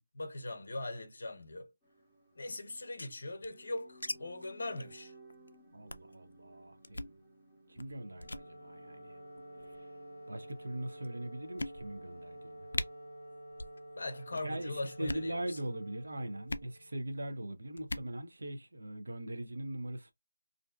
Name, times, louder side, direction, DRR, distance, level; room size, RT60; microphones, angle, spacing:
voice 1, 0.1-1.7 2.4-5.1 14.0-15.6, left 2 dB, 45° left, 0.7 m, -40 dB
sound 1, 1.8-16.1, right 1 dB, 5° right, 0.6 m, -61 dB
sound 2, 2.7-4.1 4.4-4.5 4.8-5.0 5.3-5.5 5.9-6.1 6.8-7.2 7.8-7.9 8.2-8.5 9.4-9.8 10.5-10.6 11.0-11.1 11.6-12.1 12.4-12.5 12.7-12.9 13.5-13.8 14.0-14.4 14.9-15.3 16.5-16.7 17.8-18.1, left 2 dB, 90° left, 0.3 m, -40 dB
voice 2, 5.7-7.2 7.7-9.2 9.8-9.9 10.3-12.7 14.3-20.1, right 1 dB, 65° right, 0.6 m, -41 dB
Wind instrument woodwind instrument, 7.8-17.1, right 1 dB, 35° right, 0.8 m, -50 dB
2.5 x 2.2 x 2.3 m
figure-of-eight pair, 175°, 0 cm